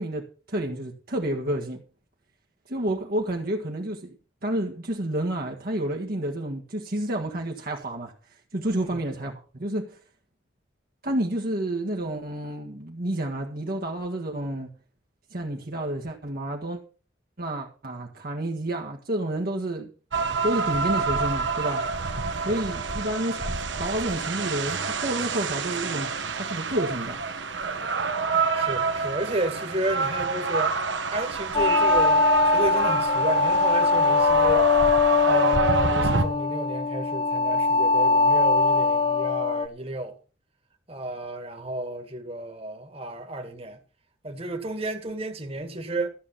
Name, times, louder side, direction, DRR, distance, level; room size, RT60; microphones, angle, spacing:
voice 1, 0.0-1.8 2.7-4.2 4.4-8.1 8.5-10.0 11.0-14.7 15.3-16.8 17.4-19.9 20.4-21.9 22.4-27.3, right 1 dB, 50° right, 1.7 m, -30 dB
sound 1, 20.1-36.3, right 4 dB, 70° right, 1.3 m, -27 dB
voice 2, 28.5-40.1 40.9-43.8 44.2-46.1, right 1 dB, 30° right, 2.0 m, -32 dB
sound 2, 31.5-39.7, left 4 dB, 25° left, 0.5 m, -22 dB
14.0 x 7.3 x 6.0 m
head